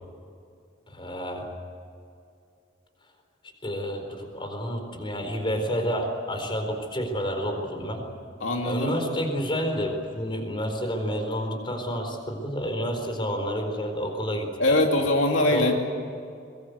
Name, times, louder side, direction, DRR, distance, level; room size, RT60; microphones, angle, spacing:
voice 1, 0.9-1.5 3.6-8.0 8.6-14.8 15.5-15.7, equal, 25° left, 5 dB, 4.3 m, -29 dB
voice 2, 8.4-8.9 14.6-15.7, left 2 dB, 80° left, 2 dB, 2.7 m, -22 dB
23.5 x 23.0 x 8.2 m, 2.4 s
head